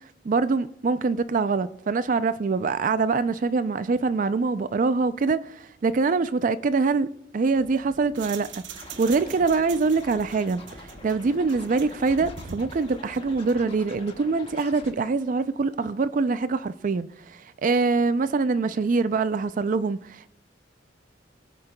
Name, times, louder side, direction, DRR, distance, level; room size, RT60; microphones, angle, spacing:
voice 1, 0.2-20.3, right 4 dB, 45° right, 0.4 m, -24 dB
sound 1, 7.5-13.7, right 6 dB, 75° right, 0.8 m, -43 dB
Scratching (performance technique), 8.7-14.9, left 2 dB, 30° left, 1.6 m, -45 dB
25.0 x 8.7 x 2.2 m
head